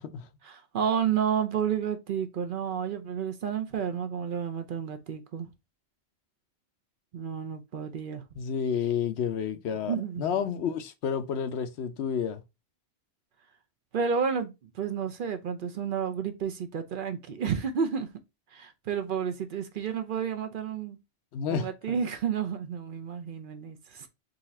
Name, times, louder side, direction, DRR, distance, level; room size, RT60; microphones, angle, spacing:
voice 1, 0.5-5.5 7.1-8.2 9.9-10.2 13.9-18.1 18.5-21.0 21.5-24.1, right 7 dB, 60° right, 0.7 m, -31 dB
voice 2, 8.4-12.4 21.3-21.9, left 7 dB, 80° left, 0.9 m, -30 dB
4.0 x 2.5 x 4.1 m
omnidirectional pair, 1.1 m